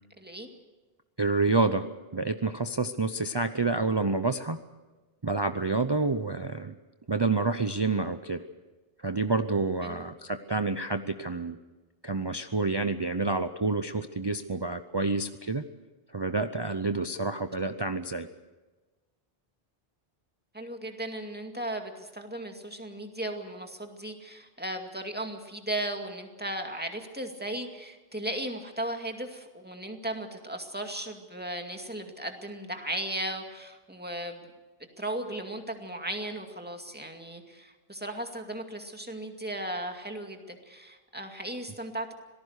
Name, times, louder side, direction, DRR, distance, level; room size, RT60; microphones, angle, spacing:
voice 1, 0.2-0.5 9.8-10.0 20.5-34.4 35.0-42.1, right 1 dB, 10° right, 4 dB, 2.2 m, -36 dB
voice 2, 1.2-1.9 2.1-4.6 5.2-6.7 7.1-8.4 9.0-11.6 12.0-15.6 16.1-18.3, right 3 dB, 30° right, 8 dB, 0.7 m, -28 dB
26.0 x 18.5 x 6.6 m, 1.2 s
omnidirectional pair, 1.0 m